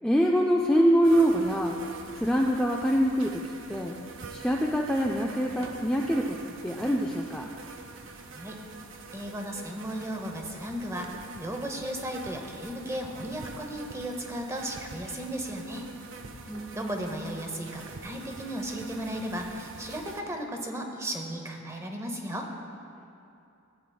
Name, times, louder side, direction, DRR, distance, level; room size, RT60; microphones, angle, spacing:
voice 1, 0.0-1.8 2.2-3.4 3.7-3.9 4.3-6.3 6.6-7.4 16.5-17.3, equal, 5° left, -1 dB, 0.3 m, -25 dB
sound 1, 1.0-20.2, right 4 dB, 65° right, 0.6 m, -45 dB
voice 2, 9.1-11.1 11.4-15.9 16.7-22.5, right 1 dB, 15° right, 3 dB, 0.7 m, -35 dB
14.5 x 8.5 x 2.3 m, 2.6 s
head